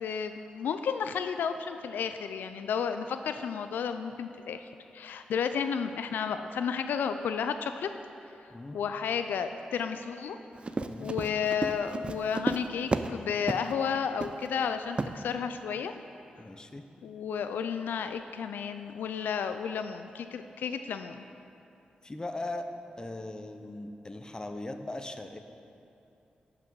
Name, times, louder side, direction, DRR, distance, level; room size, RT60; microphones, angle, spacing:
voice 1, 0.0-4.6 4.9-7.9 8.7-10.4 11.0-15.9 17.0-21.2, left 7 dB, 90° left, 9 dB, 0.3 m, -32 dB
Run, 10.6-13.2 13.5-13.7 14.2-14.5 15.0-15.1, right 3 dB, 35° right, 0.4 m, -32 dB
voice 2, 10.8-11.1 16.4-16.8 22.0-22.7 23.0-25.4, left 2 dB, 25° left, 7 dB, 0.7 m, -39 dB
11.0 x 5.9 x 4.7 m, 2.7 s
cardioid pair, 60°, 3 cm